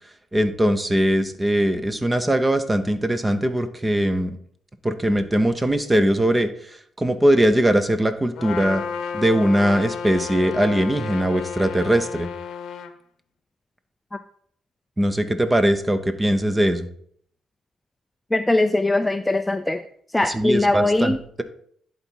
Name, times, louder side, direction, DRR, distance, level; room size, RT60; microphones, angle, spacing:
voice 1, 0.3-4.3 4.8-6.5 7.0-8.8 9.1-12.3 15.0-16.9 20.3-21.4, right 1 dB, 15° right, 10 dB, 0.7 m, -20 dB
Trumpet, 8.4-12.9, left 6 dB, 75° left, 0.7 m, -32 dB
voice 2, 18.3-19.8 20.1-21.2, left 2 dB, 10° left, 9 dB, 0.4 m, -21 dB
11.0 x 4.0 x 4.6 m, 0.62 s
cardioid pair, 110°, 0 cm